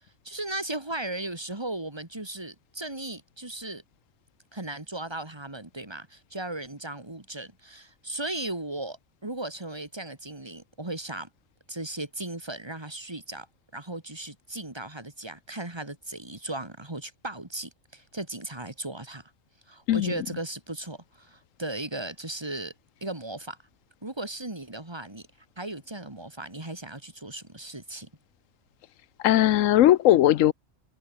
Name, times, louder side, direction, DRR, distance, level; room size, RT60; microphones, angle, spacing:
voice 1, 0.2-3.8 4.5-11.3 11.7-13.5 13.7-19.3 19.7-22.7 23.0-23.6 24.0-25.3 25.6-28.1, right 2 dB, 20° right, 2.8 m, -36 dB
voice 2, 29.2-30.5, left 13 dB, 90° left, 1.0 m, -19 dB
omnidirectional pair, 1.3 m